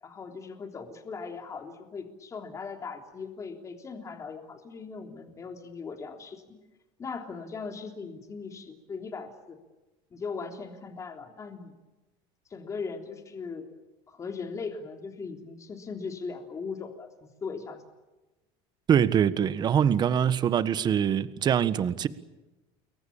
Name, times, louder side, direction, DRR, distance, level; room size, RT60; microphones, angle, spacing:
voice 1, 0.0-6.6 7.0-9.6 10.1-11.7 12.5-13.7 14.1-17.8, left 5 dB, 25° left, 3.4 m, -39 dB
voice 2, 18.9-22.1, right 8 dB, 35° right, 1.5 m, -24 dB
29.5 x 23.0 x 7.3 m
cardioid pair, 130°, 12 cm